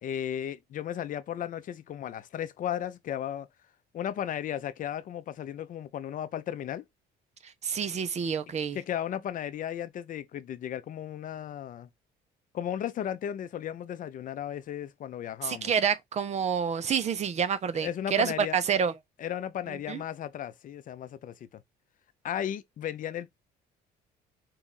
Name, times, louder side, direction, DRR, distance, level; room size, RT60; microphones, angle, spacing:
voice 1, 0.0-3.5 3.9-6.9 8.7-11.9 12.5-15.7 17.8-18.6 19.2-21.6 22.2-23.3, left 10 dB, 50° left, 0.6 m, -35 dB
voice 2, 7.6-8.8 15.4-18.9 19.7-20.0, right 7 dB, 40° right, 0.7 m, -28 dB
4.7 x 2.5 x 4.1 m
cardioid pair, 110°, 17 cm